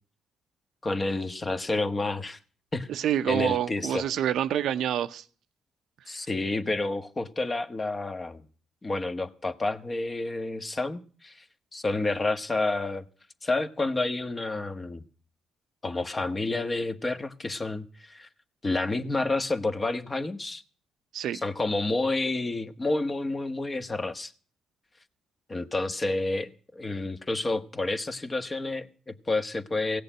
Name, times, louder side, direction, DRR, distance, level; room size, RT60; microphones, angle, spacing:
voice 1, 0.8-2.4 2.7-2.9 3.3-4.1 6.1-8.4 8.8-11.4 11.7-13.0 13.4-15.0 15.8-18.3 18.6-20.6 21.4-24.3 25.5-30.0, left 2 dB, 25° left, 1.2 m, -29 dB
voice 2, 2.9-5.2 6.1-6.2 21.1-21.4, right 10 dB, 75° right, 0.7 m, -27 dB
17.0 x 6.8 x 9.2 m
cardioid pair, 90°, 0 cm